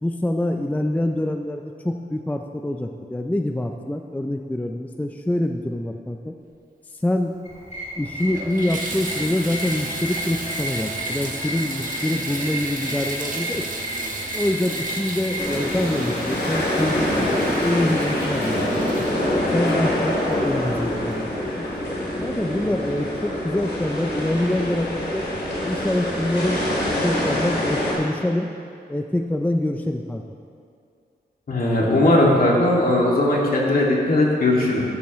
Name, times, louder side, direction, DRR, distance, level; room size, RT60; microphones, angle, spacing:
voice 1, 0.0-6.3 6.9-7.3 8.0-13.7 14.3-19.1 19.5-21.7 22.2-25.2 25.6-26.7 27.0-28.5 28.9-30.2, left 1 dB, 10° left, 4 dB, 0.5 m, -25 dB
sound 1, 7.5-15.6, equal, 40° left, 3.0 m, -33 dB
Water tap faucet / Bathtub (filling or washing), 7.5-7.6 8.1-20.5 21.1-21.2 21.7-21.8, right 2 dB, 50° right, 1.6 m, -34 dB
sound 2, 15.3-27.9, left 1 dB, 85° left, 3.5 m, -25 dB
voice 2, 31.5-34.8, left 1 dB, 55° left, -3 dB, 2.3 m, -18 dB
14.0 x 13.5 x 3.2 m, 2.4 s
wide cardioid pair, 120°, 17 cm